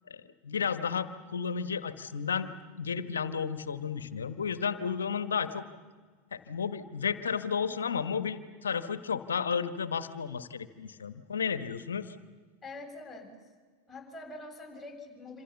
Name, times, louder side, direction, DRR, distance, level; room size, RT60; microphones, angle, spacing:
voice 1, 0.1-2.5 2.8-5.6 6.3-12.2, left 6 dB, 75° left, 13 dB, 1.3 m, -32 dB
voice 2, 12.6-13.3 13.9-15.4, left 2 dB, 15° left, 2 dB, 6.6 m, -45 dB
27.0 x 26.0 x 7.1 m, 1.5 s
figure-of-eight pair, 80°, 0 cm